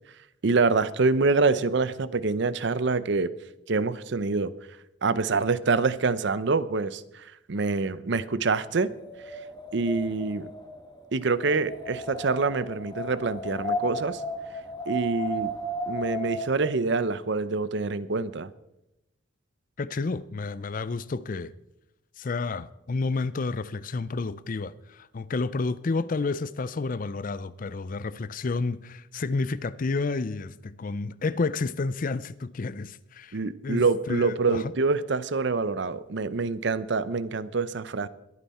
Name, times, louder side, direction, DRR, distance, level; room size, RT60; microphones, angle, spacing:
voice 1, 0.4-3.3 3.7-4.5 5.0-8.9 9.7-10.5 11.1-14.2 14.9-15.5 15.9-18.5 33.3-38.1, right 4 dB, 65° right, 0.6 m, -26 dB
Wind, 8.7-16.7, equal, 20° left, 1.6 m, -34 dB
voice 2, 19.8-21.5 22.2-33.4 33.6-34.6, left 3 dB, 45° left, 0.5 m, -30 dB
21.5 x 9.2 x 4.2 m
head